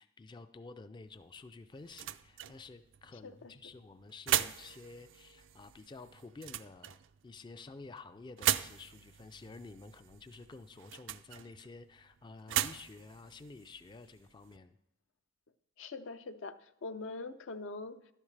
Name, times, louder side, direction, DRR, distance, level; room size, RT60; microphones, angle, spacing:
voice 1, 0.0-7.0 7.2-14.8, left 3 dB, 25° left, 0.3 m, -51 dB
sound 1, 1.1-14.6, right 12 dB, 70° right, 0.4 m, -39 dB
voice 2, 15.8-18.0, left 3 dB, 80° left, 0.6 m, -43 dB
12.0 x 10.5 x 3.3 m
head